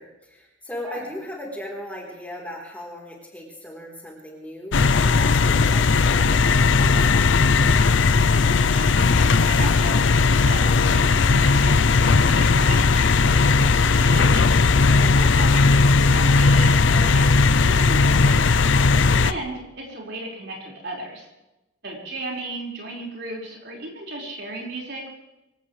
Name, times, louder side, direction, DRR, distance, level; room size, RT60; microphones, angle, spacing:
voice 1, 0.0-7.4 18.9-19.3, left 1 dB, 10° left, -2 dB, 3.9 m, -38 dB
sound 1, 4.7-19.3, left 4 dB, 70° left, 0.6 m, -17 dB
voice 2, 8.4-10.0 10.5-14.4 14.9-18.6 19.2-21.3 21.8-25.1, right 2 dB, 55° right, -1 dB, 5.3 m, -35 dB
25.0 x 17.5 x 3.4 m, 0.97 s
head